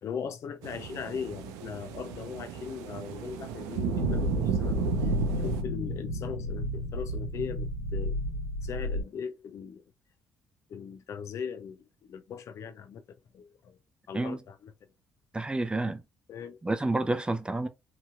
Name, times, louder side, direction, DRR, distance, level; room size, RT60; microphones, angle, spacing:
voice 1, 0.0-8.2 8.6-9.8 10.7-13.0 13.3-13.8 14.1-14.7 16.3-16.6, left 7 dB, 60° left, 0.4 m, -39 dB
sound 1, 0.6-5.6, right 6 dB, 85° right, 0.5 m, -32 dB
sound 2, 4.0-9.0, left 1 dB, 85° left, 1.3 m, -32 dB
voice 2, 15.3-16.0 16.6-17.7, right 2 dB, 15° right, 0.6 m, -29 dB
2.9 x 2.9 x 2.3 m
supercardioid pair, 55°, 6 cm